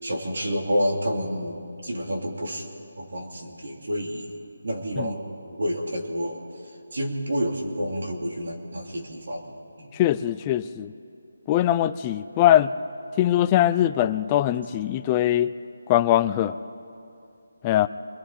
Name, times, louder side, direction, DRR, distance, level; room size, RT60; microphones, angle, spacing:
voice 1, 0.0-2.6 3.0-4.3 4.6-5.2 5.5-6.4 6.9-9.5 9.8-9.9, equal, 65° right, 1 dB, 3.3 m, -29 dB
voice 2, 9.9-10.9 11.5-12.7 13.2-15.5 15.9-16.5 17.6-17.9, left 12 dB, 15° left, 12 dB, 0.4 m, -21 dB
29.5 x 21.0 x 4.3 m, 2.6 s
figure-of-eight pair, 170°, 0 cm